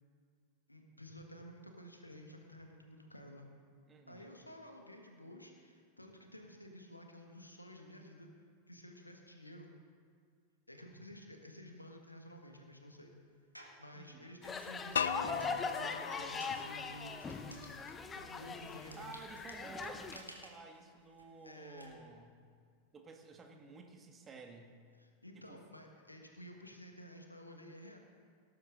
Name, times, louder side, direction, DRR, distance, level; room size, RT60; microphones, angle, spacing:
voice 1, 0.7-3.5 4.1-8.3 8.7-9.7 10.7-13.1 13.8-19.1 21.4-22.0 25.0-28.0, equal, 85° left, 3 dB, 1.6 m, -53 dB
voice 2, 3.9-4.3 13.9-14.3 19.0-22.4 22.9-24.8 25.3-25.6, right 4 dB, 20° right, 4 dB, 1.6 m, -52 dB
sound 1, 13.5-13.9 14.4-21.9, equal, 90° right, 1.6 m, -57 dB
sound 2, 14.4-20.2, left 5 dB, 20° left, 0.8 m, -41 dB
sound 3, 15.0-17.9, left 7 dB, 65° left, 0.3 m, -39 dB
18.5 x 11.5 x 3.9 m, 2.2 s
figure-of-eight pair, 90°, 0 cm